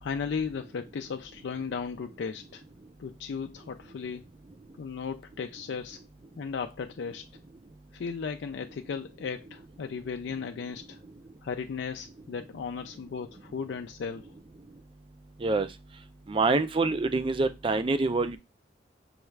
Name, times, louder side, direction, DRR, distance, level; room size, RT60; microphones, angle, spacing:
voice 1, 0.0-2.6 3.0-4.2 4.8-6.0 6.4-7.2 7.9-11.0 11.4-14.3, left 5 dB, 75° left, 0.4 m, -35 dB
voice 2, 16.3-18.4, right 3 dB, 30° right, 0.4 m, -26 dB
5.5 x 2.4 x 3.1 m
head